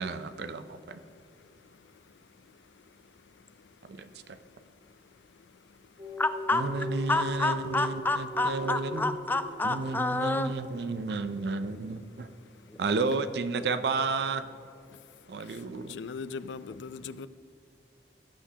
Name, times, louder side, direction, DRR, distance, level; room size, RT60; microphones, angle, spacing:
voice 1, 0.0-1.0 3.8-4.4 6.5-9.2 9.6-12.3 12.8-14.4 15.3-16.0, right 4 dB, 65° right, 0.5 m, -32 dB
voice 2, 1.0-6.1 12.2-12.3 12.5-12.8 14.9-17.3, left 5 dB, 90° left, 0.4 m, -46 dB
sound 1, 6.0-10.0, left 1 dB, 35° right, 2.4 m, -39 dB
voice 3, 6.2-6.6 7.1-10.5, left 2 dB, 10° left, 0.4 m, -28 dB
18.0 x 8.2 x 2.8 m
head